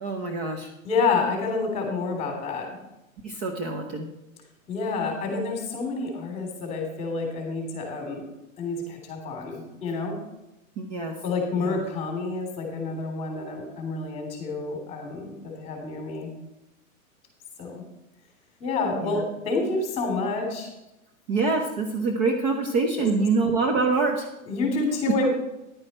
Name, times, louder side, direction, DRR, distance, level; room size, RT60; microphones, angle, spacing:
voice 1, 0.0-0.7 3.2-4.1 10.8-11.1 11.5-11.8 19.0-19.2 21.3-24.3 25.1-25.2, right 3 dB, 30° right, 3 dB, 1.0 m, -25 dB
voice 2, 0.8-2.7 4.7-8.2 8.6-10.1 11.2-16.3 17.6-17.8 18.6-20.7 23.0-23.1 24.5-25.3, left 3 dB, 15° left, 1 dB, 3.0 m, -28 dB
10.5 x 9.6 x 4.3 m, 0.92 s
hypercardioid pair, 160°, 42 cm